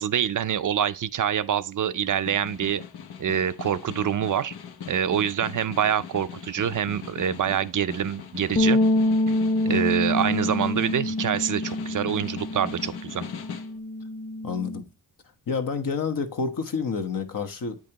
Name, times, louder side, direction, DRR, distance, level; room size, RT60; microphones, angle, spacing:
voice 1, 0.0-2.8 3.2-4.5 4.9-8.8 9.7-13.3, right 9 dB, 55° right, 0.5 m, -26 dB
Snare drum, 1.9-13.8, left 7 dB, 90° left, 0.8 m, -40 dB
sound 1, 8.6-14.8, left 1 dB, 30° left, 1.0 m, -26 dB
voice 2, 9.7-10.0 14.4-14.9 15.5-17.8, left 5 dB, 60° left, 1.1 m, -29 dB
8.7 x 5.2 x 2.9 m
wide cardioid pair, 105°, 37 cm